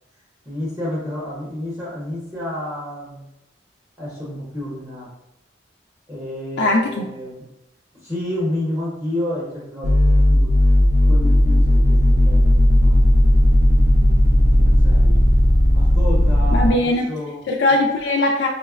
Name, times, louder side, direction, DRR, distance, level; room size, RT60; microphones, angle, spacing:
voice 1, 0.4-3.3 4.0-5.1 6.1-7.5 7.9-10.5 11.0-13.0 14.5-15.2 15.7-17.4, left 1 dB, 10° right, -6 dB, 0.7 m, -30 dB
voice 2, 6.6-7.1 16.5-17.1 17.5-18.5, left 2 dB, 65° left, -1 dB, 0.3 m, -19 dB
sound 1, 9.8-16.7, left 1 dB, 45° right, 0.4 m, -15 dB
4.8 x 2.0 x 2.3 m, 0.89 s
head